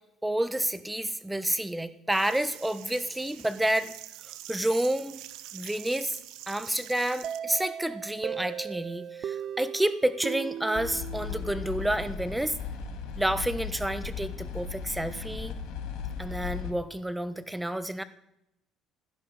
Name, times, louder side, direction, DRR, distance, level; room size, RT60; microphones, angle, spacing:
voice 1, 0.2-3.9 4.5-5.2 5.5-6.2 6.5-12.6 13.2-15.5 16.2-18.0, right 1 dB, 10° right, 13 dB, 1.1 m, -29 dB
sound 1, 2.1-7.4, right 14 dB, 75° right, 0.8 m, -45 dB
sound 2, 7.2-11.9, right 9 dB, 55° right, 0.4 m, -37 dB
sound 3, 10.8-16.7, left 7 dB, 75° left, 1.9 m, -37 dB
16.0 x 11.0 x 4.9 m, 0.83 s
supercardioid pair, 75°, 0 cm